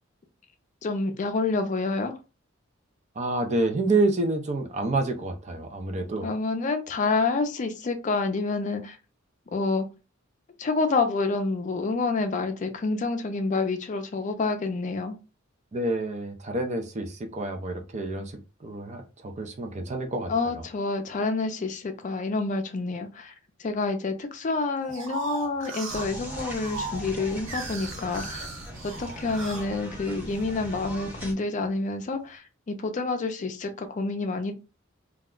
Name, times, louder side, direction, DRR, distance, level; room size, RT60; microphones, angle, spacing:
voice 1, 0.8-2.2 6.2-9.0 9.5-9.9 10.6-15.2 20.3-23.3 23.6-28.5 28.8-34.5, left 3 dB, 40° left, 0.4 m, -28 dB
voice 2, 3.2-6.3 15.7-20.5, right 2 dB, 35° right, 0.5 m, -28 dB
sound 1, 24.8-30.5 31.1-31.8, right 3 dB, 65° right, 1.0 m, -38 dB
sound 2, 25.9-31.3, equal, 10° right, 0.9 m, -40 dB
2.3 x 2.1 x 3.6 m
head